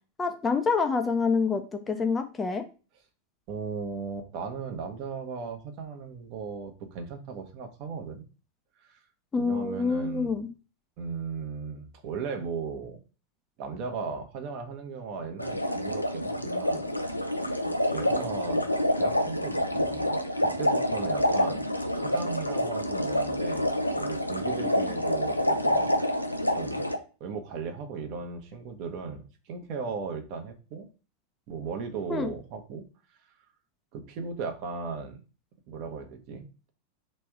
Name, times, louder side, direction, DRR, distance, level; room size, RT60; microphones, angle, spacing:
voice 1, 0.2-2.6 9.3-10.5 32.1-32.3, left 4 dB, 15° left, 7 dB, 0.5 m, -27 dB
voice 2, 3.5-8.2 8.8-9.0 9.4-10.4 11.0-13.0 13.6-17.6 17.9-25.9 26.2-26.8 27.2-30.9 31.5-32.8 33.9-35.2 35.7-36.7, right 5 dB, 45° right, 5 dB, 0.9 m, -37 dB
sound 1, 15.4-27.0, equal, 85° left, 0.5 m, -27 dB
3.4 x 3.2 x 4.7 m, 0.34 s
figure-of-eight pair, 90°, 0 cm